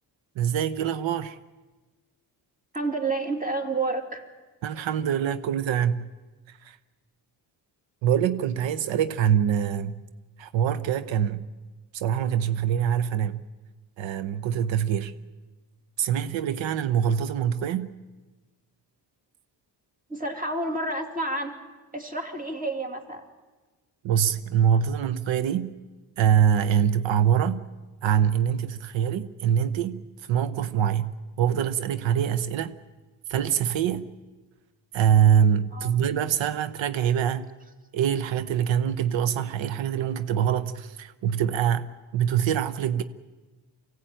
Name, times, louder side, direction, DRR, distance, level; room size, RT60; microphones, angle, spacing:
voice 1, 0.4-1.4 4.6-6.1 6.5-6.8 8.0-10.0 10.4-11.5 11.9-13.4 14.0-15.1 16.0-17.9 24.0-25.7 26.2-27.6 28.0-30.0 30.3-32.8 33.3-34.1 34.9-37.5 37.9-43.0, right 9 dB, 90° right, 14 dB, 0.9 m, -24 dB
voice 2, 2.7-4.2 20.1-21.6 21.9-23.3 35.7-36.0, right 2 dB, 20° right, 5 dB, 2.6 m, -29 dB
24.5 x 17.0 x 9.0 m, 1.3 s
cardioid pair, 110°, 44 cm